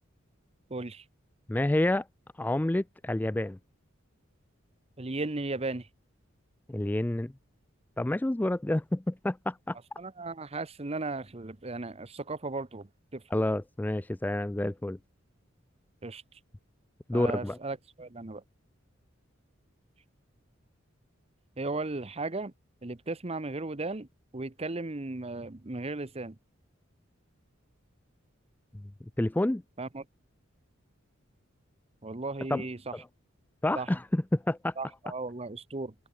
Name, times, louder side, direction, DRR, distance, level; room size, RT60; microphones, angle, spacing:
voice 1, 0.7-1.0 5.0-5.9 10.0-13.2 16.0-16.2 17.1-18.4 21.6-22.5 22.8-24.1 24.3-26.3 29.8-30.0 32.0-32.9 33.8-33.9 34.8-35.9, right 3 dB, 30° right, 1.0 m, -36 dB
voice 2, 1.5-2.1 2.4-3.6 6.7-7.3 8.0-9.8 13.3-15.0 17.1-17.6 29.2-29.6 32.5-32.7 32.9-33.1 33.6-34.7, left 1 dB, 10° left, 0.3 m, -28 dB
open air
head